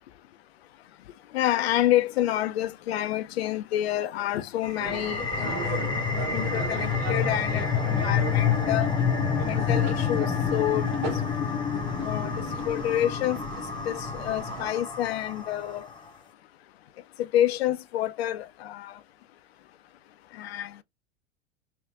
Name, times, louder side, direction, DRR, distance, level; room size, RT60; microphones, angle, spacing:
voice 1, 1.3-5.8 6.3-8.9 9.4-10.3 10.5-11.2 12.0-13.4 13.9-15.9 17.2-19.0 20.3-20.8, left 12 dB, 65° left, 0.5 m, -28 dB
sound 1, 4.6-15.8, left 7 dB, 15° left, 0.7 m, -28 dB
sound 2, 4.8-14.7, right 8 dB, 35° right, 0.6 m, -38 dB
3.5 x 2.5 x 3.6 m
figure-of-eight pair, 90°, 34 cm